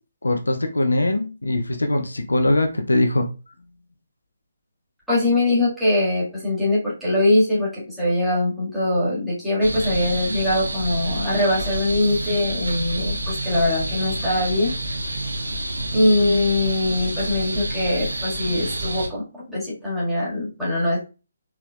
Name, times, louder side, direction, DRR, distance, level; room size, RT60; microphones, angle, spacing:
voice 1, 0.2-3.3, left 1 dB, 70° left, 5 dB, 0.6 m, -21 dB
voice 2, 5.1-14.7 15.9-21.0, left 1 dB, ahead, -10 dB, 1.9 m, -22 dB
sound 1, 9.6-19.1, right 1 dB, 70° right, 0.9 m, -28 dB
4.7 x 3.6 x 2.4 m, 0.32 s
figure-of-eight pair, 140°, 0 cm